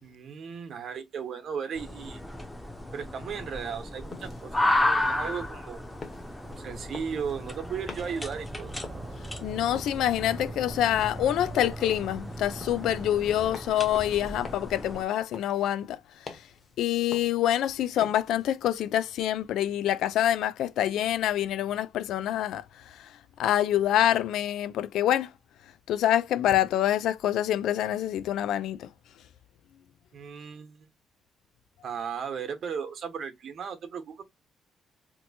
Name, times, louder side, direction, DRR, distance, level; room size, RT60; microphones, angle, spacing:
voice 1, 0.0-2.2 2.9-5.8 6.6-8.7 30.1-30.9 31.8-34.2, right 6 dB, 60° right, 1.0 m, -36 dB
sound 1, 1.7-15.0, left 1 dB, 10° left, 0.7 m, -34 dB
sound 2, 3.9-18.8, left 4 dB, 40° left, 1.0 m, -49 dB
sound 3, 6.4-13.5, right 2 dB, 30° right, 0.5 m, -42 dB
voice 2, 9.4-16.0 16.8-23.1 23.4-25.3 25.9-28.9, left 12 dB, 80° left, 0.3 m, -26 dB
2.9 x 2.1 x 4.1 m
cardioid pair, 90°, 0 cm